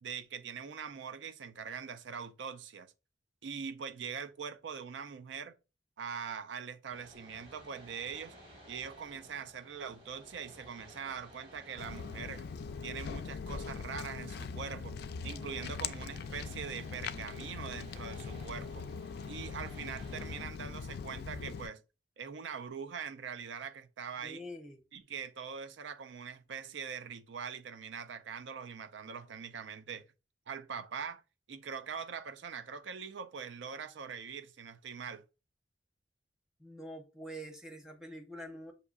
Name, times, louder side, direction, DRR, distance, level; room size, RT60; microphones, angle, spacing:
voice 1, 0.0-2.9 3.4-5.6 6.0-8.4 8.7-12.5 12.8-15.0 15.2-18.9 19.3-21.8 22.2-24.4 24.9-30.0 30.5-31.2 31.5-35.2, right 6 dB, 80° right, 0.4 m, -42 dB
sound 1, 6.9-20.5, equal, 35° right, 1.8 m, -56 dB
Walk footsteps, 11.8-21.7, left 5 dB, 60° left, 0.3 m, -41 dB
voice 2, 24.2-24.8 36.6-38.7, equal, 5° right, 0.7 m, -45 dB
6.6 x 2.7 x 2.4 m
head